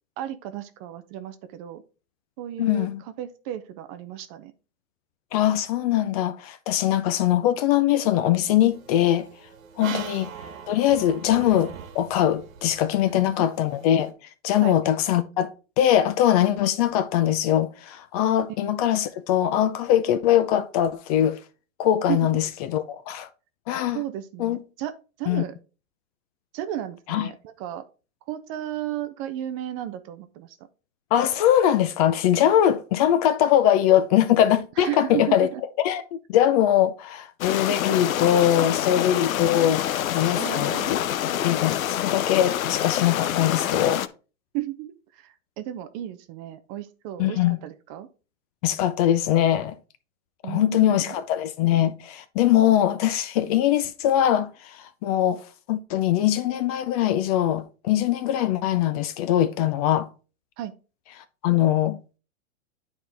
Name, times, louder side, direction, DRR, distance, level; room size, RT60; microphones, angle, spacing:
voice 1, 0.2-1.8 2.4-4.5 9.9-10.0 13.1-13.2 14.6-14.8 22.1-22.4 23.9-25.5 26.5-27.8 28.3-30.6 34.8-35.6 40.4-41.0 44.5-48.1 50.4-51.1 60.6-60.7, right 12 dB, 30° right, 0.4 m, -34 dB
voice 2, 2.6-3.0 5.3-9.3 9.8-10.3 10.7-14.1 14.4-21.4 21.8-23.3 23.7-24.0 24.4-24.6 25.3-25.4 27.1-27.3 31.1-35.5 35.8-40.7 41.4-44.0 47.2-47.6 48.6-49.8 50.4-60.1 61.4-62.0, left 11 dB, 30° left, 0.4 m, -22 dB
sound 1, 8.7-14.1, right 7 dB, 80° right, 1.5 m, -41 dB
sound 2, 37.4-44.1, left 11 dB, 85° left, 0.7 m, -26 dB
9.7 x 4.3 x 3.4 m
hypercardioid pair, 130°, 40 cm